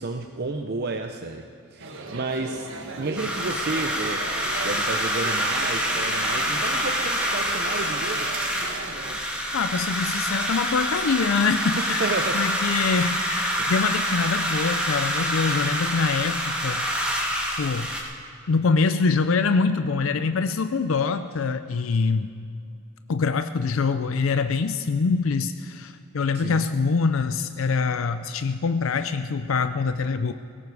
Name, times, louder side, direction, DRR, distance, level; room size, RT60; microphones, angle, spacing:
voice 1, 0.0-2.7 3.0-8.3 11.8-12.5 13.6-13.7 26.3-26.7, right 3 dB, 55° right, 5 dB, 0.7 m, -31 dB
sound 1, 1.8-9.2, right 2 dB, 70° right, 1.4 m, -38 dB
sound 2, 3.2-18.0, equal, 5° right, 1.9 m, -26 dB
voice 2, 9.5-17.0 17.6-17.9 18.5-22.3 23.1-30.3, left 4 dB, 80° left, 10 dB, 0.5 m, -24 dB
17.5 x 16.5 x 4.8 m, 2.4 s
head